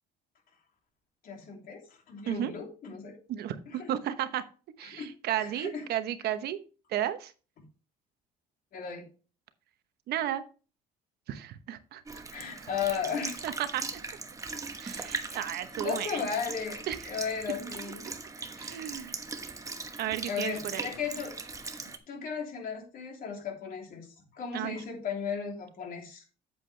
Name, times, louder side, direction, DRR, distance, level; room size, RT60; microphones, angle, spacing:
voice 1, 1.2-3.2 3.7-3.9 4.8-5.1 5.4-5.8 8.7-9.1 12.3-13.4 14.5-14.6 15.3-18.1 18.4-18.7 20.3-21.7 22.1-24.1 24.3-26.2, left 6 dB, 60° left, 1 dB, 3.1 m, -36 dB
voice 2, 3.3-4.4 4.8-6.6 6.9-7.3 10.1-10.4 11.3-12.2 13.4-14.0 14.8-16.3 16.9-17.2 18.6-19.1 20.0-20.9 24.5-24.8, right 11 dB, 70° right, 11 dB, 1.0 m, -33 dB
Sink (filling or washing) / Liquid, 12.1-22.0, right 3 dB, 20° right, 1.0 m, -40 dB
8.3 x 7.9 x 3.3 m, 0.35 s
cardioid pair, 110°, 17 cm